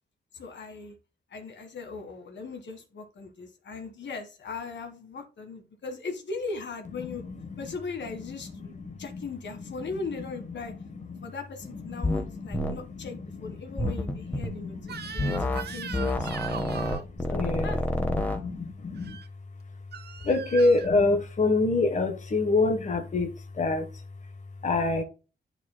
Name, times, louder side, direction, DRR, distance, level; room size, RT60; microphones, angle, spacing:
voice 1, 0.3-1.0 1.3-7.2 7.6-10.7 11.2-16.3 17.3-18.4, left 4 dB, 75° left, 1.6 m, -39 dB
voice 2, 7.1-7.7 8.6-9.2 10.6-11.3 11.7-19.2 20.2-24.0 24.6-25.0, left 3 dB, 40° left, 1.1 m, -28 dB
sound 1, 12.0-12.3 12.5-12.7 13.8-14.5 15.2-15.6 15.9-18.4, left 1 dB, 10° left, 1.2 m, -28 dB
Crying sobbing / Screech, 14.9-17.1 19.0-19.3 19.9-20.9, right 7 dB, 60° right, 0.7 m, -39 dB
11.5 x 4.7 x 2.2 m
wide cardioid pair, 125°, 19 cm